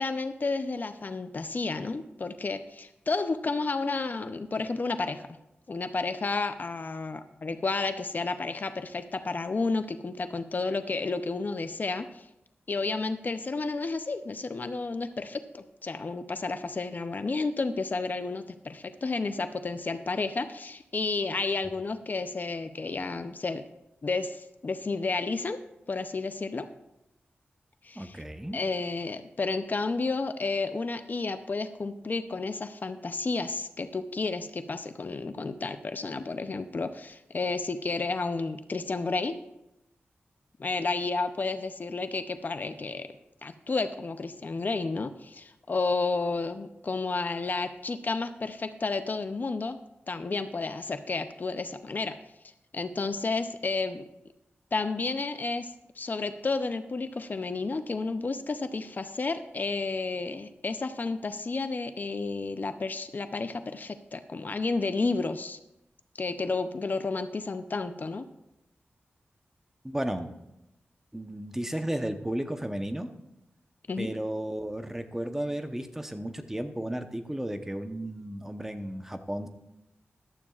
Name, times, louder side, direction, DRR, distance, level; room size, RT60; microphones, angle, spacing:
voice 1, 0.0-5.3 5.7-12.2 12.7-23.6 24.0-25.6 25.9-26.7 27.8-28.2 28.5-39.4 40.6-43.1 43.4-49.8 50.1-52.2 52.7-54.1 54.7-65.6 66.2-68.2 73.9-74.1, left 3 dB, 45° left, 9 dB, 0.6 m, -31 dB
voice 2, 28.0-28.6 69.8-70.3 71.1-73.1 74.0-79.5, right 1 dB, 10° right, 7 dB, 0.9 m, -33 dB
14.0 x 12.0 x 2.4 m, 0.89 s
wide cardioid pair, 95°, 4 cm